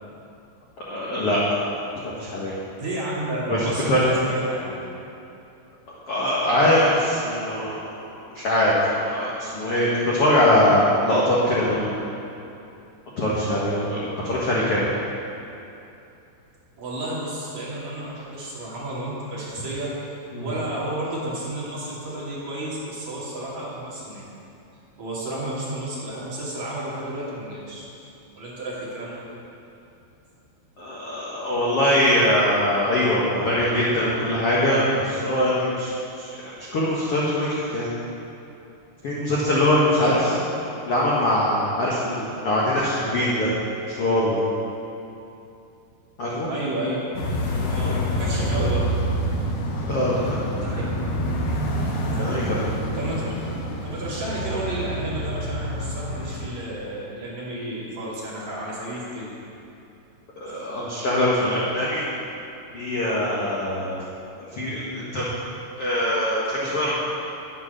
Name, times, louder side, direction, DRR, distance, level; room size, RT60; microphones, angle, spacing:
voice 1, 0.9-1.4 2.0-2.5 3.5-3.6 3.9-4.1 6.1-8.1 8.3-11.9 13.2-14.9 20.3-20.5 30.8-36.3 36.6-37.9 39.0-40.1 40.9-43.5 43.9-44.4 46.2-46.5 47.8-47.9 49.8-50.6 52.2-52.7 60.4-62.0 62.7-64.0 64.6-65.3 65.8-66.9, left 1 dB, 55° left, -7 dB, 1.6 m, -22 dB
voice 2, 2.8-4.8 16.8-19.9 20.4-24.3 25.0-27.8 28.4-29.2 40.0-40.4 46.5-47.0 47.6-48.8 50.5-50.8 52.1-52.2 52.9-53.3 53.8-59.3, right 1 dB, 45° right, -7 dB, 3.4 m, -31 dB
sound 1, 47.1-56.5, equal, 75° left, 3.3 m, -27 dB
10.5 x 9.4 x 6.6 m, 2.8 s
omnidirectional pair, 4.8 m